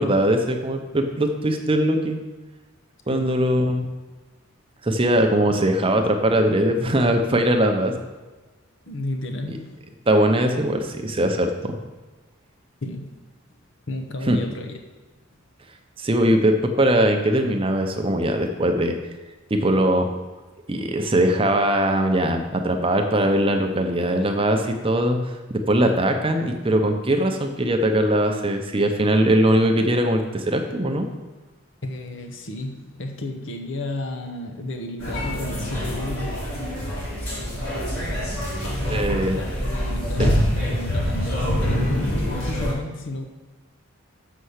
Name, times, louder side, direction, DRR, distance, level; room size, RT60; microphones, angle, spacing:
voice 1, 0.0-2.2 3.1-3.9 4.8-7.9 9.5-9.6 10.1-11.8 14.3-14.4 16.0-18.9 19.5-20.1 20.7-31.1 38.9-39.4 40.2-40.3, right 1 dB, 25° right, 4 dB, 0.7 m, -21 dB
voice 2, 3.1-3.5 8.9-9.8 12.8-13.1 13.9-14.8 31.8-36.4 39.1-43.2, left 1 dB, 60° left, 5 dB, 0.8 m, -33 dB
sound 1, 35.0-42.7, equal, 75° left, 3.1 m, -25 dB
6.8 x 5.6 x 6.5 m, 1.3 s
head